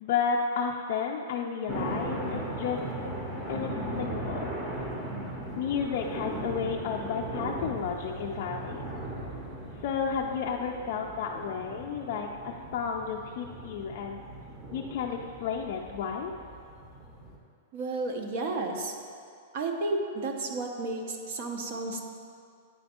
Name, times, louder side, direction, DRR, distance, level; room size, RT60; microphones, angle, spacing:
voice 1, 0.0-2.8 3.5-4.6 5.6-8.9 9.8-14.2 14.7-16.3, left 6 dB, 45° left, -1 dB, 0.4 m, -32 dB
sound 1, 1.7-17.4, right 1 dB, 10° right, 0.8 m, -38 dB
voice 2, 17.7-19.0 19.5-22.1, right 2 dB, 45° right, 3 dB, 0.6 m, -32 dB
9.3 x 4.3 x 4.3 m, 2.3 s
supercardioid pair, 175°, 0 cm